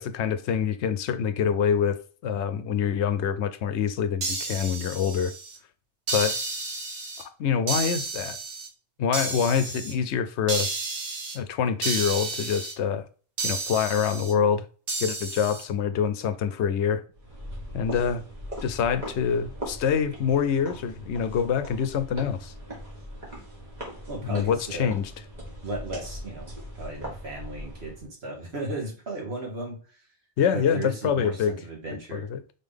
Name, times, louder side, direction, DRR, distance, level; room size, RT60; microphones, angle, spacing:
voice 1, 0.0-5.3 6.1-6.4 7.2-8.4 9.0-10.7 11.3-13.0 13.4-14.6 15.0-17.0 17.7-18.2 18.6-22.5 24.2-25.1 30.4-31.5 32.1-32.4, left 7 dB, 75° left, 0.8 m, -26 dB
sound 1, 4.2-5.6 6.1-7.2 7.7-8.7 9.1-9.9 10.5-11.4 11.8-12.7 13.4-14.3 14.9-15.6, right 3 dB, 90° right, 1.5 m, -31 dB
sound 2, 17.1-28.1, equal, 40° right, 1.8 m, -40 dB
voice 2, 24.1-24.9 25.6-26.5 26.8-30.1 30.5-32.3, right 2 dB, 65° right, 1.8 m, -35 dB
3.9 x 3.7 x 3.4 m
omnidirectional pair, 1.2 m